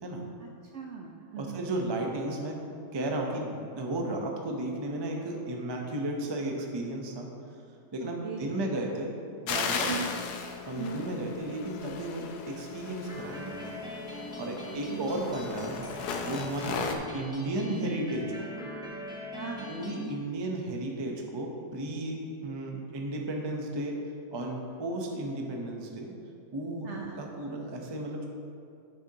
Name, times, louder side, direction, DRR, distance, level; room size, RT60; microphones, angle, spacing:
voice 1, 0.4-1.6 8.2-8.5 9.8-10.0 10.8-11.0 14.7-15.1 16.7-17.0 19.3-19.7 26.8-27.2, right 5 dB, 65° right, 0 dB, 0.7 m, -39 dB
voice 2, 1.4-2.5 2.9-7.3 7.9-9.1 9.4-9.9 10.7-13.8 14.4-18.5 19.7-24.0 24.3-26.1 26.5-28.2, right 1 dB, 35° right, 1 dB, 0.4 m, -34 dB
sound 1, 9.5-17.0, left 6 dB, 75° left, 1.2 m, -36 dB
sound 2, 13.1-20.1, equal, 5° right, 0.7 m, -42 dB
9.7 x 6.8 x 2.8 m, 2.5 s
omnidirectional pair, 1.8 m